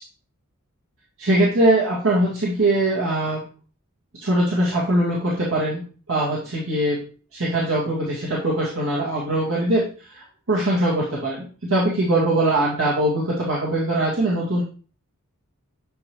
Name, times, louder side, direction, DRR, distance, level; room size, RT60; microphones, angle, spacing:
voice 1, 1.2-3.4 4.2-5.8 6.1-7.0 7.3-9.8 10.1-14.6, right 1 dB, 65° right, -6 dB, 1.8 m, -21 dB
7.6 x 4.8 x 3.3 m, 0.38 s
head